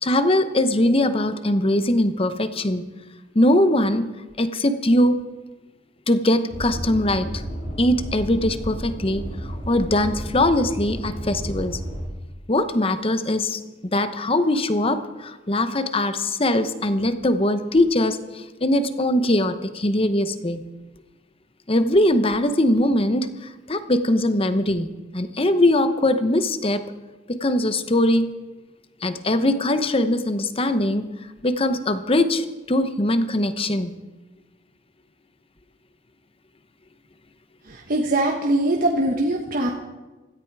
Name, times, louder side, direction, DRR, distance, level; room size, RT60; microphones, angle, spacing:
voice 1, 0.0-2.8 3.3-4.0 4.4-5.2 6.1-7.3 7.8-9.2 9.5-11.8 12.5-13.6 13.9-20.6 21.7-23.3 23.7-24.9 25.1-26.8 27.3-28.3 29.0-31.0 31.4-33.9, left 1 dB, 30° left, 10 dB, 0.9 m, -21 dB
sound 1, 6.5-12.0, equal, 80° left, 5.0 m, -32 dB
voice 2, 37.6-39.7, right 1 dB, 50° right, 0 dB, 1.3 m, -22 dB
16.5 x 14.0 x 4.8 m, 1.2 s
head